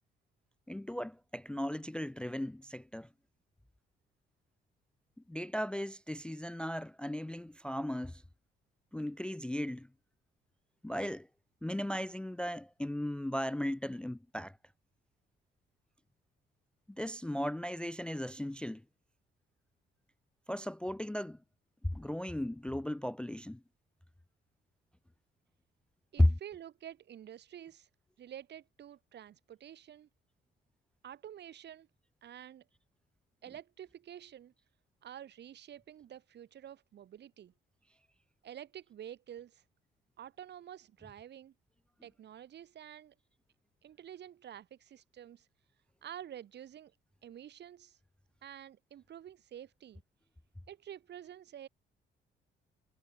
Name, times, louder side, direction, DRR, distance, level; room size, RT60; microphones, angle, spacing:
voice 1, 0.7-3.1 5.3-8.2 8.9-9.9 10.8-11.3 11.6-14.6 16.9-18.8 20.5-21.4 21.8-23.6 26.2-26.3, left 1 dB, 5° left, 0.4 m, -35 dB
voice 2, 26.1-27.9 28.2-30.1 31.0-31.9 32.2-32.6 33.4-34.5 35.0-37.5 38.4-39.6 40.2-41.5 42.0-43.1 43.8-45.5 46.0-46.9 47.2-48.0 48.4-50.0 50.7-51.7, right 10 dB, 60° right, 1.1 m, -49 dB
cardioid pair, 90°, 20 cm